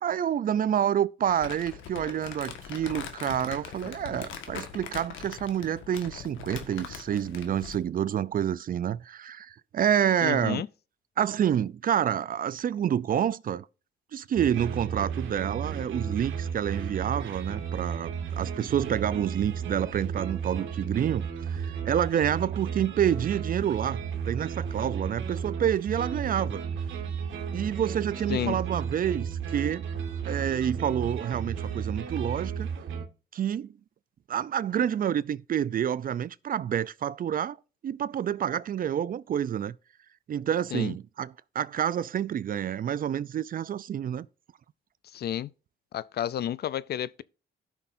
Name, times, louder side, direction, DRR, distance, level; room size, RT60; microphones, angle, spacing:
voice 1, 0.0-10.6 11.2-13.7 14.1-26.6 27.5-29.9 30.2-32.7 33.3-33.7 34.3-37.6 37.8-39.8 40.3-44.3, right 9 dB, 45° right, 0.5 m, -28 dB
Crumpling crinkling, 1.2-7.9, left 7 dB, 80° left, 1.6 m, -41 dB
voice 2, 10.2-10.7 28.3-28.6 40.7-41.0 45.1-45.5 45.9-47.2, left 10 dB, 55° left, 0.5 m, -31 dB
sound 1, 14.4-33.1, right 7 dB, 75° right, 1.8 m, -33 dB
16.5 x 6.0 x 2.6 m
cardioid pair, 90°, 20 cm